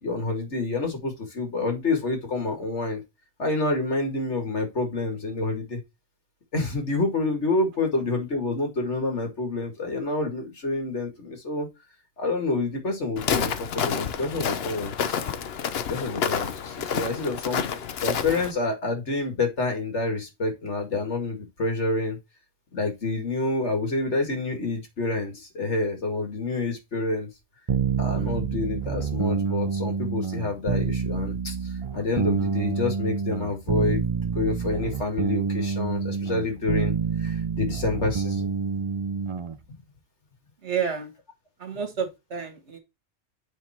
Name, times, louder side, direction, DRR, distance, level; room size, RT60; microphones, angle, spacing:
voice 1, 0.0-3.0 3.4-5.8 6.5-11.7 12.2-15.2 15.9-17.7 18.0-22.2 22.7-27.3 28.0-36.9 37.2-38.5, left 2 dB, 85° left, 2.5 m, -28 dB
Walk footsteps, 13.2-18.5, left 7 dB, 65° left, 0.9 m, -29 dB
sound 1, 27.7-39.5, right 6 dB, 45° right, 0.4 m, -27 dB
voice 2, 40.6-41.1 41.6-42.8, right 7 dB, 75° right, 1.8 m, -30 dB
9.3 x 3.8 x 4.3 m
omnidirectional pair, 1.2 m